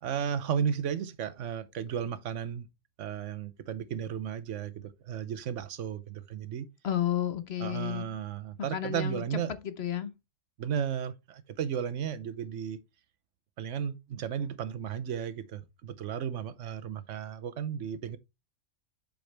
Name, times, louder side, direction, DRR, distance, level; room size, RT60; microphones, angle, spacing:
voice 1, 0.0-2.7 3.0-6.7 7.6-9.5 10.6-12.8 13.6-18.2, right 8 dB, 75° right, 1.0 m, -34 dB
voice 2, 6.8-8.1 8.7-10.1, left 10 dB, 60° left, 1.0 m, -32 dB
7.8 x 5.3 x 3.2 m
omnidirectional pair, 1.3 m